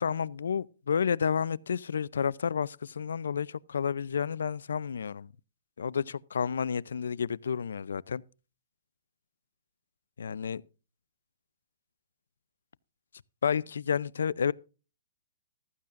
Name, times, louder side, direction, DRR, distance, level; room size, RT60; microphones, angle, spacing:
voice 1, 0.0-5.3 5.8-8.2 10.2-10.6 13.4-14.5, left 7 dB, 85° left, 0.5 m, -30 dB
15.0 x 13.5 x 2.5 m
hypercardioid pair, 145°, 0 cm